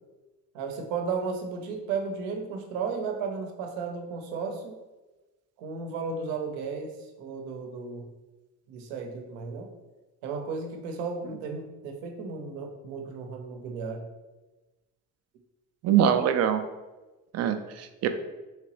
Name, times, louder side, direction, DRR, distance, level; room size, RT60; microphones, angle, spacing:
voice 1, 0.5-4.8 5.6-8.1 8.7-9.8 10.2-14.1, right 5 dB, 80° right, 3 dB, 0.7 m, -34 dB
voice 2, 15.8-16.6 17.3-18.1, right 9 dB, 40° right, 8 dB, 0.4 m, -23 dB
3.2 x 3.0 x 3.0 m, 1.1 s
hypercardioid pair, 70°, 43 cm